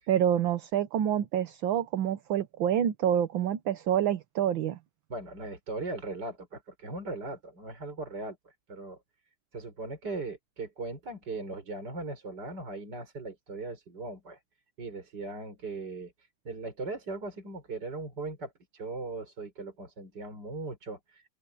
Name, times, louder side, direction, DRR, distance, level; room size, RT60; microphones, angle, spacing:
voice 1, 0.1-4.8, right 10 dB, 65° right, 1.7 m, -27 dB
voice 2, 5.1-8.4 8.7-9.0 9.5-14.4 14.8-16.1 16.5-21.3, right 3 dB, 50° right, 5.6 m, -39 dB
open air
omnidirectional pair, 2.4 m